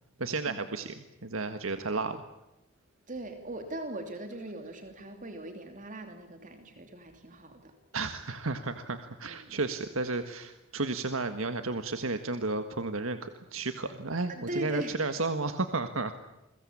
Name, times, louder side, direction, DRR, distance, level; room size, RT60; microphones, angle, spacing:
voice 1, 0.2-2.2 7.9-16.2, right 3 dB, 80° right, 9 dB, 1.7 m, -33 dB
voice 2, 3.1-7.7 9.2-9.6 14.3-15.0, right 1 dB, 40° right, 6 dB, 3.0 m, -40 dB
29.5 x 23.0 x 8.7 m, 0.96 s
head